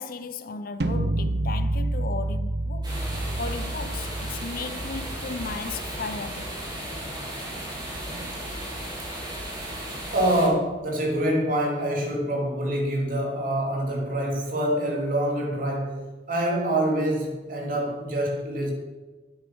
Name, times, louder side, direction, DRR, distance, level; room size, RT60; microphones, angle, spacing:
voice 1, 0.0-3.0 3.4-6.6, left 4 dB, 55° left, 0.6 m, -35 dB
sound 1, 0.8-6.8, right 1 dB, 65° right, 0.7 m, -30 dB
sound 2, 2.8-10.5, right 1 dB, 25° right, 3.8 m, -35 dB
voice 2, 10.1-18.7, right 1 dB, 50° right, 3.0 m, -26 dB
9.7 x 8.6 x 6.2 m
head